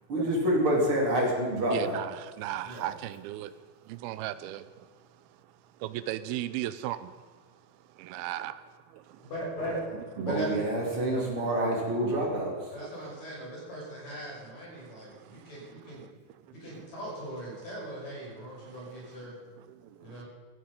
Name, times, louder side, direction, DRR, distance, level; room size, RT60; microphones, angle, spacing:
voice 1, 0.1-2.0 10.2-12.7, right 1 dB, 30° right, -2 dB, 4.0 m, -27 dB
voice 2, 1.7-3.5 3.8-4.9 5.8-7.2 8.0-9.3 10.2-10.3 14.7-16.4 17.5-17.6 18.6-18.8 19.1-20.2, right 13 dB, 85° right, 13 dB, 2.2 m, -38 dB
voice 3, 9.2-9.8 10.2-10.6 11.1-11.4 12.7-16.0 16.5-19.4 20.0-20.3, right 1 dB, 40° left, -4 dB, 7.1 m, -39 dB
17.0 x 14.5 x 5.4 m, 1.5 s
omnidirectional pair, 5.1 m